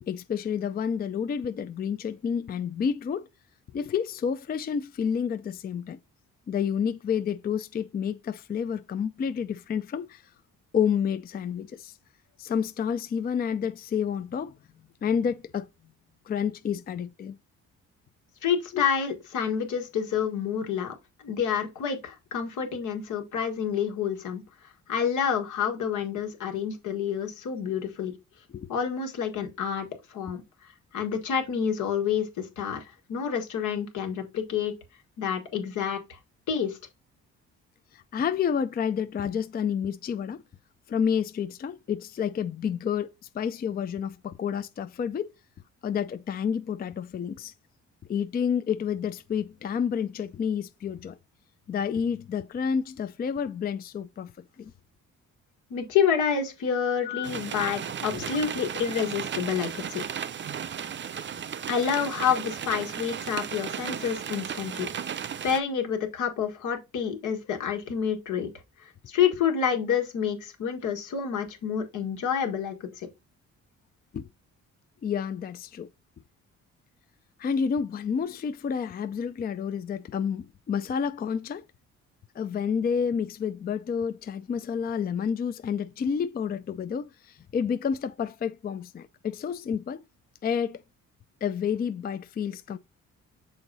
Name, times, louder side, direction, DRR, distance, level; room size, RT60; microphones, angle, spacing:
voice 1, 0.0-3.3 3.7-6.0 6.5-10.2 10.7-12.0 12.4-14.6 15.0-15.7 16.3-17.4 18.7-18.9 28.5-28.7 37.9-40.4 40.9-45.3 45.8-47.5 48.1-51.2 51.7-54.3 54.6-54.7 57.0-57.3 58.1-58.3 74.1-74.3 75.0-75.9 77.4-81.6 82.3-90.0 90.4-90.8 91.4-92.8, left 7 dB, 30° left, 0.4 m, -29 dB
voice 2, 18.4-24.4 24.9-28.1 28.7-30.4 30.9-34.7 35.2-36.2 36.5-36.8 55.7-60.1 61.7-64.9 65.4-68.5 68.8-73.1, left 7 dB, 80° left, 1.7 m, -28 dB
sound 1, 57.2-65.6, right 8 dB, 40° right, 0.6 m, -35 dB
6.4 x 3.9 x 4.0 m
cardioid pair, 90°, 30 cm